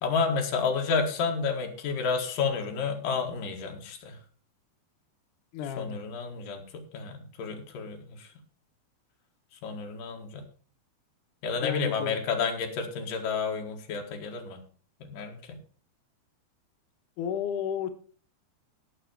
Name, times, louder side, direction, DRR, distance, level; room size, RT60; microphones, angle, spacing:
voice 1, 0.0-4.2 5.8-8.3 9.6-10.4 11.4-14.6 15.0-15.6, left 5 dB, 60° left, 3 dB, 3.1 m, -30 dB
voice 2, 5.5-6.0 11.6-12.2 17.2-17.9, left 8 dB, 80° left, 7 dB, 1.8 m, -32 dB
17.5 x 6.1 x 4.5 m, 0.42 s
omnidirectional pair, 4.9 m